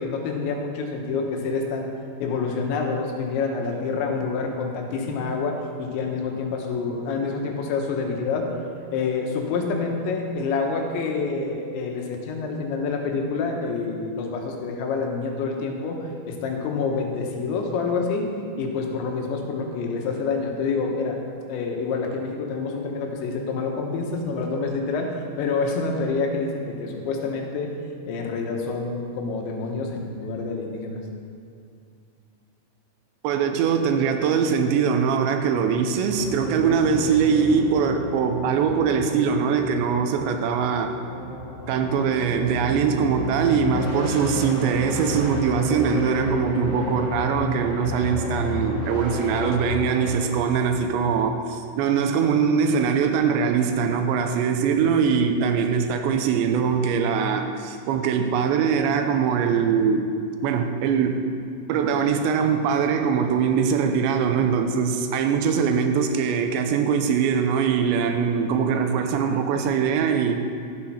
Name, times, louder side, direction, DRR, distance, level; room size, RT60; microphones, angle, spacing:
voice 1, 0.0-1.9 2.2-8.5 8.9-18.3 18.6-21.2 21.5-27.7 28.1-31.0, left 4 dB, 85° left, 2 dB, 3.5 m, -27 dB
voice 2, 33.2-40.9 41.7-60.1 60.4-61.3 61.7-70.5, right 6 dB, 85° right, 6 dB, 2.9 m, -22 dB
sound 1, 36.1-50.3, equal, 40° left, 3.0 m, -31 dB
12.5 x 8.8 x 5.7 m, 2.4 s
omnidirectional pair, 5.2 m